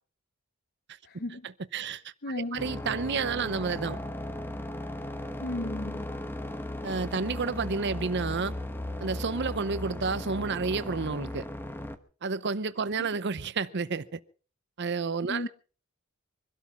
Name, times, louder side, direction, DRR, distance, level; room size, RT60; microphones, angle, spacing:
voice 1, 1.0-1.4 2.2-2.6 5.4-6.0 15.3-15.5, left 1 dB, 50° left, 0.9 m, -34 dB
voice 2, 1.7-4.0 6.8-8.6 9.0-11.4 12.2-14.2 14.8-15.5, right 4 dB, 55° right, 0.7 m, -30 dB
sound 1, 2.6-12.0, left 1 dB, 10° left, 1.0 m, -37 dB
24.0 x 12.5 x 4.4 m
head